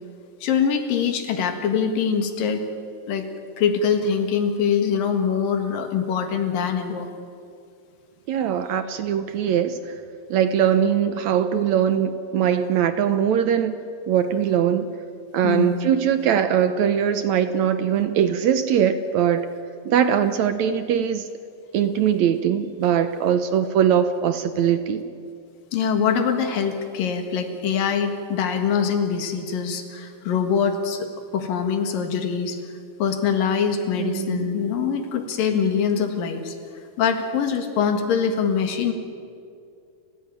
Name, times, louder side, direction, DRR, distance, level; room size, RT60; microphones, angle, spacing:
voice 1, 0.4-2.6 3.1-3.3 3.6-7.1 15.4-16.0 25.7-31.1 31.3-32.6 33.0-36.6 37.0-38.9, left 7 dB, 80° left, 6 dB, 3.6 m, -23 dB
voice 2, 8.3-9.8 10.3-13.8 14.1-14.9 15.3-19.5 19.9-21.3 21.7-25.0 34.0-34.5, right 9 dB, 70° right, 10 dB, 2.0 m, -21 dB
30.0 x 15.5 x 9.2 m, 2.4 s
omnidirectional pair, 3.9 m